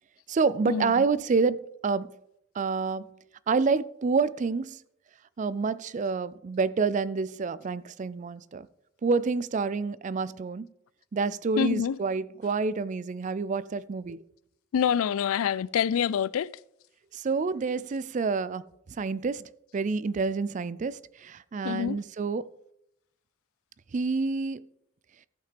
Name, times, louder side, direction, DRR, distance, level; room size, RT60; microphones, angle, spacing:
voice 1, 0.3-2.1 2.5-3.1 3.5-4.8 5.4-8.7 9.0-10.7 11.1-14.2 17.1-22.5 23.9-24.6, right 4 dB, 35° right, 0.3 m, -28 dB
voice 2, 11.6-12.0 14.7-16.5 21.6-22.0, left 8 dB, 85° left, 0.3 m, -26 dB
14.5 x 5.8 x 5.1 m
head